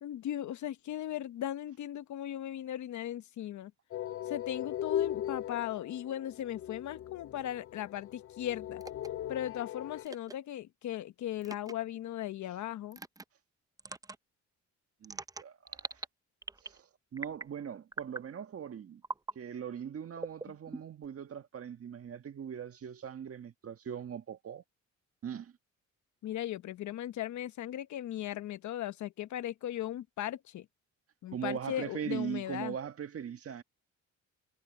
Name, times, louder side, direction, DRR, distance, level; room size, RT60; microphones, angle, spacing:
voice 1, 0.0-3.7 4.3-8.8 9.3-13.0 26.2-30.7 31.2-32.8, left 12 dB, 70° left, 1.0 m, -37 dB
sound 1, 3.9-10.1, left 11 dB, 45° left, 0.4 m, -38 dB
sound 2, 8.8-9.1 10.0-10.3 11.4-11.7 12.9-13.2 13.8-14.2 15.0-16.1 16.4-16.8 17.2-17.5 17.9-18.3 19.0-19.4 20.2-21.1, right 3 dB, 10° right, 0.6 m, -42 dB
voice 2, 15.0-16.0 16.6-19.0 19.4-24.6 25.2-25.5 31.3-33.6, right 8 dB, 50° right, 1.7 m, -40 dB
cardioid pair, 90°, 30 cm